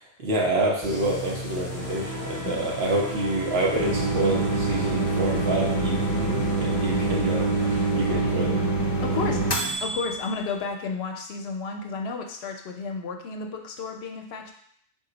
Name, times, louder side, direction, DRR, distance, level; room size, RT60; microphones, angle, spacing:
voice 1, 0.2-8.6 9.1-9.4, right 2 dB, 65° right, -2 dB, 1.1 m, -28 dB
sound 1, 0.8-8.5, left 1 dB, 15° left, 0.9 m, -38 dB
sound 2, 1.8-9.8, right 2 dB, 30° right, 0.4 m, -39 dB
sound 3, 3.8-10.3, right 2 dB, 35° left, 0.4 m, -25 dB
voice 2, 9.0-9.4 9.8-14.5, left 4 dB, 70° left, 3 dB, 0.8 m, -32 dB
3.8 x 2.7 x 3.8 m, 0.66 s
omnidirectional pair, 1.1 m